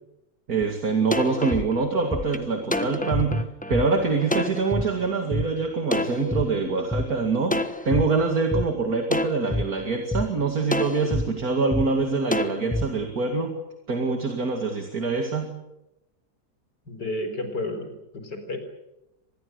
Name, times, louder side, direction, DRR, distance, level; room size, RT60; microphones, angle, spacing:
voice 1, 0.5-3.4 3.7-13.5 13.9-15.5, right 4 dB, 60° right, 4 dB, 2.7 m, -25 dB
sound 1, 0.6-0.7 1.1-4.8 5.3-5.4 5.9-7.0 7.5-8.0 8.5-8.6 9.1-9.6 10.1-10.2 10.7-11.2 11.7-11.8 12.3-12.8, left 1 dB, 5° left, 1.0 m, -26 dB
voice 2, 16.9-18.6, left 2 dB, 90° left, 7 dB, 4.9 m, -31 dB
25.5 x 20.0 x 7.9 m, 0.90 s
omnidirectional pair, 1.8 m